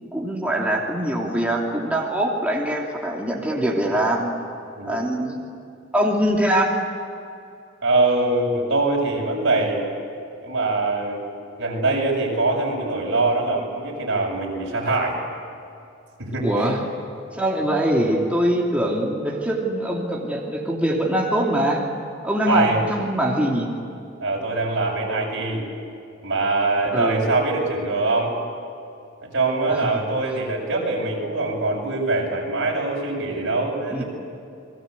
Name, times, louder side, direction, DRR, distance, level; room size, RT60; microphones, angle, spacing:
voice 1, 0.0-4.3 4.8-5.4 5.9-6.7 16.4-16.8 17.3-21.8 22.2-23.7 26.9-27.2 29.7-30.0 33.9-34.0, right 1 dB, 5° right, -3 dB, 2.9 m, -23 dB
voice 2, 7.8-9.9 10.4-11.2 11.5-15.2 16.2-16.7 22.5-22.8 24.2-25.6 26.2-28.4 29.2-34.0, right 2 dB, 65° right, -1 dB, 7.7 m, -23 dB
30.0 x 22.0 x 8.4 m, 2.6 s
head